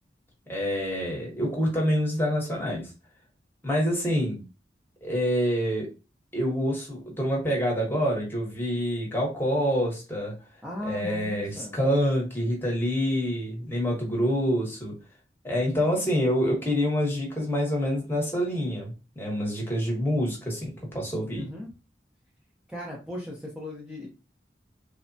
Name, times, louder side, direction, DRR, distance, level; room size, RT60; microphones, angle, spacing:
voice 1, 0.5-2.9 3.6-4.4 5.0-5.9 6.3-10.3 10.8-14.9 15.4-21.5, equal, 15° left, -2 dB, 0.9 m, -26 dB
voice 2, 10.6-11.8 21.3-21.7 22.7-24.1, left 1 dB, 5° right, -5 dB, 0.5 m, -37 dB
3.2 x 2.1 x 2.5 m, 0.31 s
head